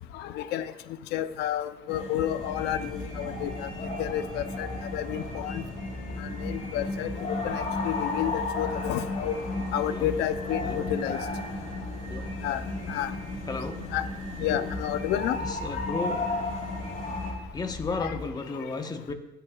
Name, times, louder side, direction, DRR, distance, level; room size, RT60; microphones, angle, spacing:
voice 1, 0.1-0.7 1.1-3.7 4.0-4.7 4.9-5.6 6.2-9.4 9.7-11.2 12.4-12.6 12.9-13.1 13.9-14.1 14.4-15.4 18.0-18.2, left 11 dB, 90° left, 12 dB, 0.6 m, -30 dB
sound 1, 1.9-17.3, left 2 dB, 50° left, 4.6 m, -34 dB
sound 2, 2.2-18.4, left 1 dB, 5° right, 1.6 m, -41 dB
voice 2, 13.5-13.8 15.4-16.2 17.5-19.1, left 4 dB, 25° left, 6 dB, 1.1 m, -33 dB
24.0 x 8.0 x 2.4 m, 0.99 s
cardioid pair, 110°, 17 cm